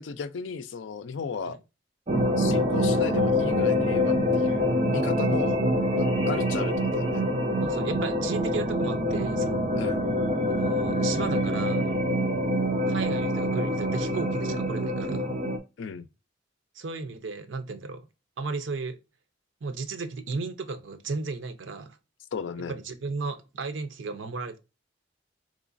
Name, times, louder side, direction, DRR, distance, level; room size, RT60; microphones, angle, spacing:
voice 1, 0.0-1.6 2.4-5.6 5.9-7.2 9.7-10.0 15.8-16.1 22.3-22.8, left 5 dB, 70° left, 0.4 m, -35 dB
sound 1, 2.1-15.6, equal, 30° right, 0.6 m, -25 dB
voice 2, 7.6-9.6 10.5-11.9 12.9-15.3 16.7-18.0 18.4-19.0 19.6-22.0 22.7-24.6, right 4 dB, 75° right, 0.6 m, -34 dB
3.7 x 3.0 x 2.4 m
head